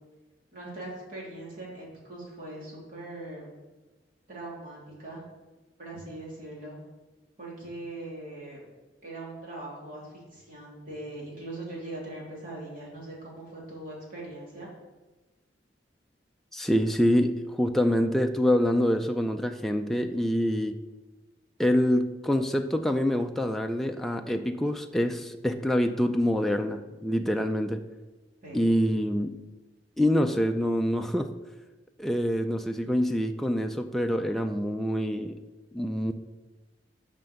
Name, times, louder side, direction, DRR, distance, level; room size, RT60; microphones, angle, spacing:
voice 1, 0.5-3.5 4.3-5.2 5.8-6.7 7.4-8.6 9.0-14.7 28.4-28.6, right 2 dB, 50° right, -5 dB, 3.3 m, -41 dB
voice 2, 16.5-20.8 21.6-27.8 28.5-29.4 30.0-31.3 32.0-35.4 35.7-36.1, equal, ahead, 4 dB, 0.3 m, -26 dB
7.4 x 5.2 x 6.9 m, 1.2 s
head